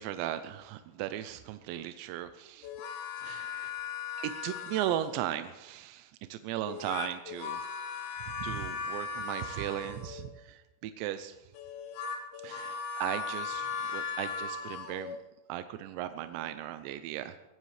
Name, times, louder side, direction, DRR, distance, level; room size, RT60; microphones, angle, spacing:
voice 1, 0.0-2.7 3.2-3.7 4.2-7.6 8.4-11.4 12.4-15.2 15.5-17.4, right 12 dB, 85° right, 10 dB, 2.9 m, -37 dB
sound 1, 2.6-5.2 6.6-10.3 11.5-15.2, left 5 dB, 85° left, 3.6 m, -38 dB
21.0 x 14.5 x 3.3 m, 1.1 s
omnidirectional pair, 5.1 m